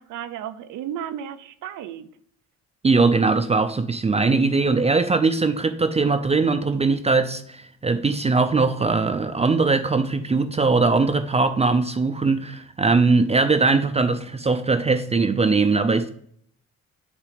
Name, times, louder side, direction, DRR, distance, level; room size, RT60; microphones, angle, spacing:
voice 1, 0.0-2.1, right 10 dB, 85° right, 0.6 m, -34 dB
voice 2, 2.8-16.1, right 4 dB, 20° right, 0.4 m, -20 dB
6.1 x 3.7 x 5.0 m
cardioid pair, 90°, 30 cm